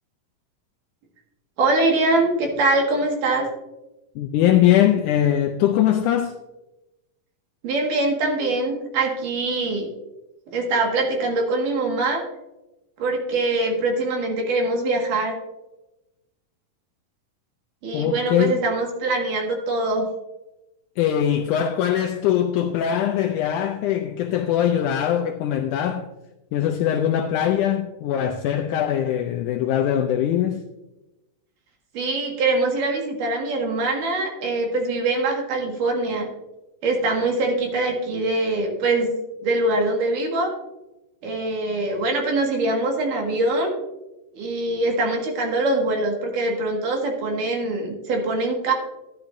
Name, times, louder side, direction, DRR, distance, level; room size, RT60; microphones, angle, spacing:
voice 1, 1.6-3.5 7.6-9.9 10.5-12.2 13.0-15.4 17.8-20.1 31.9-36.3 36.8-40.5 41.2-43.7 44.3-48.7, right 2 dB, 65° right, 3.2 m, -23 dB
voice 2, 4.2-6.4 17.9-18.6 21.0-26.1 26.5-30.6, left 10 dB, 80° left, 1.8 m, -21 dB
11.5 x 11.0 x 2.6 m
omnidirectional pair, 4.1 m